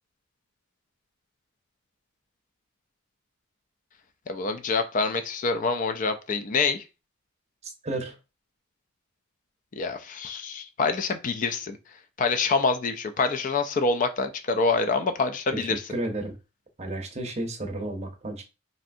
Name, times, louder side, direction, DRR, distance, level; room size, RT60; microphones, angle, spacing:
voice 1, 4.3-6.8 9.8-11.8 12.2-15.8, left 4 dB, 40° left, 0.3 m, -26 dB
voice 2, 7.8-8.2 15.5-16.3 16.8-18.4, right 1 dB, 30° right, 0.6 m, -32 dB
3.2 x 2.6 x 2.6 m
head